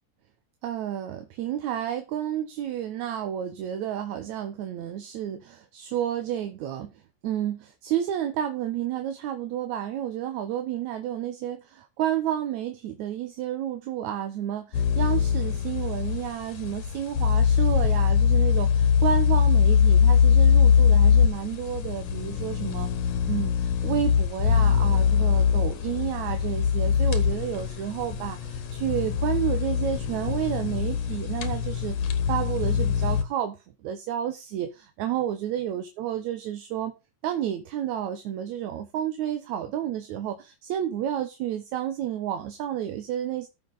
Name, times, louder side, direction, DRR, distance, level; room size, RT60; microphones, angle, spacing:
voice 1, 0.6-6.9 7.2-22.9 23.3-33.6 33.8-36.9 37.2-43.5, right 10 dB, 75° right, 2.3 m, -31 dB
sound 1, 14.7-33.2, left 7 dB, 60° left, 2.2 m, -22 dB
14.0 x 6.8 x 4.1 m
omnidirectional pair, 3.5 m